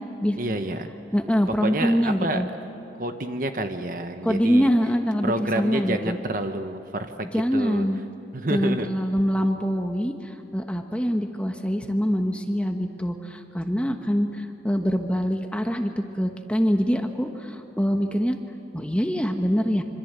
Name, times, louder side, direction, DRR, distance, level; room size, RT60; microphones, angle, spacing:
voice 1, 0.4-0.9 1.6-2.4 3.0-4.7 5.2-7.8 8.3-8.9, right 1 dB, 50° right, 7 dB, 1.2 m, -28 dB
voice 2, 1.1-2.5 4.2-6.2 7.3-8.0 8.5-18.4 18.7-19.8, equal, 5° left, 4 dB, 1.2 m, -24 dB
26.0 x 25.5 x 8.3 m, 2.7 s
head